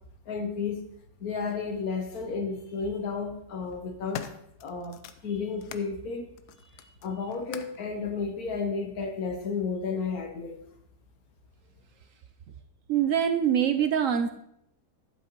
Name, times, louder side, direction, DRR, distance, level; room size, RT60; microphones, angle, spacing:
voice 1, 0.3-0.9 1.2-4.3 4.6-6.3 7.0-10.6, left 5 dB, 70° left, 5 dB, 1.5 m, -32 dB
sound 1, 1.5-1.6 2.7-3.1 3.6-5.9 6.4-7.9 8.7-8.8, left 7 dB, 90° left, 1.2 m, -44 dB
voice 2, 12.9-14.3, right 9 dB, 70° right, 7 dB, 0.9 m, -24 dB
12.0 x 7.7 x 3.0 m, 0.74 s
omnidirectional pair, 1.7 m